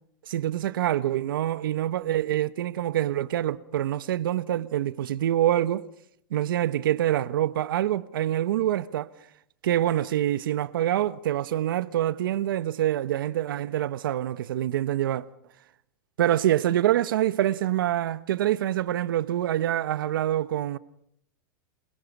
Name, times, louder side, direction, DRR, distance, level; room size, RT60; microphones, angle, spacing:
voice 1, 0.3-5.8 6.3-9.1 9.6-15.2 16.2-20.8, right 12 dB, 80° right, 1.0 m, -26 dB
28.0 x 22.0 x 5.4 m
supercardioid pair, 145°, 11 cm